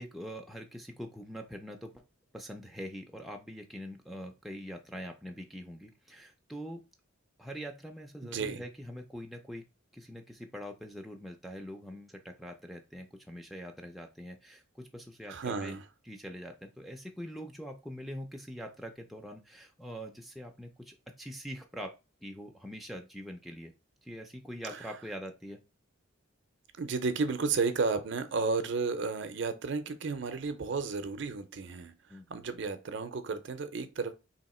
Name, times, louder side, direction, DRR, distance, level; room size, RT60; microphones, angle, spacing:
voice 1, 0.0-2.0 2.3-6.8 7.4-9.6 9.9-15.7 16.1-23.7 24.0-25.6 32.1-32.3, equal, ahead, 0.4 m, -44 dB
voice 2, 8.2-8.6 15.3-15.8 24.7-24.9 26.8-34.1, right 4 dB, 60° right, 0.5 m, -33 dB
3.0 x 2.8 x 4.1 m
head